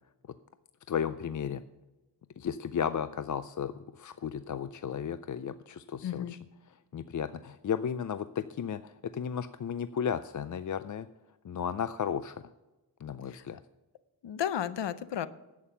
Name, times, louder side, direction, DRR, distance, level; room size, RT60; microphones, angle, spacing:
voice 1, 0.9-1.6 2.4-6.4 6.9-11.1 11.4-12.4 13.0-13.6, left 8 dB, 50° left, 12 dB, 0.4 m, -34 dB
voice 2, 6.0-6.4 13.3-13.4 14.2-15.3, left 10 dB, 85° left, 15 dB, 0.7 m, -33 dB
11.0 x 8.6 x 5.6 m, 1.1 s
wide cardioid pair, 130°, 42 cm